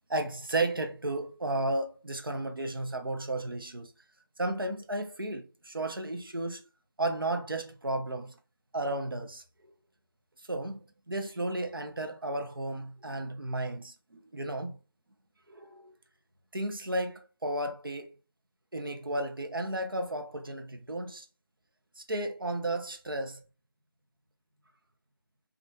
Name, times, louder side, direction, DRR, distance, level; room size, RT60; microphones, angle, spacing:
voice 1, 0.1-3.9 4.4-6.7 7.0-8.4 8.7-9.4 10.5-14.8 15.5-16.0 16.5-18.2 18.7-21.3 22.0-23.4, right 2 dB, 85° right, 0.6 m, -33 dB
2.4 x 2.2 x 2.5 m
figure-of-eight pair, 160°, 11 cm